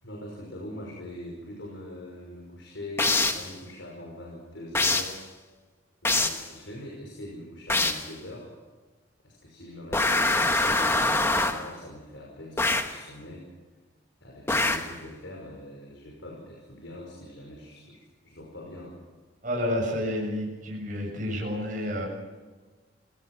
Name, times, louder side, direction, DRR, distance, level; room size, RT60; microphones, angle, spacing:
voice 1, 0.0-5.2 6.0-8.5 9.2-13.5 14.2-18.9, left 1 dB, 75° left, -1 dB, 5.9 m, -42 dB
sound 1, 3.0-3.5 4.7-5.2 6.0-6.5 7.7-8.1 9.9-11.7 12.6-13.0 14.5-15.0, left 2 dB, 15° left, 1.3 m, -24 dB
voice 2, 19.4-22.1, left 1 dB, 45° right, -1 dB, 7.2 m, -30 dB
28.0 x 18.0 x 6.3 m, 1.3 s
head